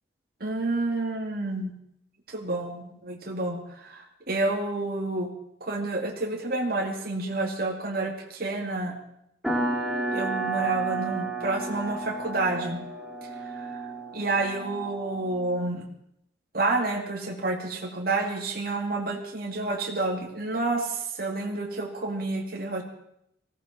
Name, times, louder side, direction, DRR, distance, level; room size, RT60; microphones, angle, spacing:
voice 1, 0.4-1.7 2.3-5.3 5.6-9.0 10.1-12.8 13.4-13.9 14.1-15.9 16.5-22.8, right 2 dB, 55° right, 0 dB, 2.4 m, -29 dB
sound 1, 9.4-15.6, right 3 dB, ahead, 2.7 m, -32 dB
19.0 x 16.0 x 4.4 m, 0.75 s
head